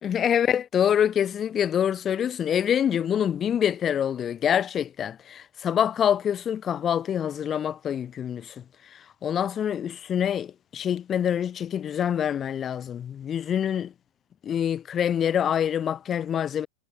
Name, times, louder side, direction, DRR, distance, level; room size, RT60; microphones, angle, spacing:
voice 1, 0.0-8.5 9.2-13.9 14.4-16.7, left 9 dB, 25° left, 1.9 m, -25 dB
figure-of-eight pair, 90°, 0 cm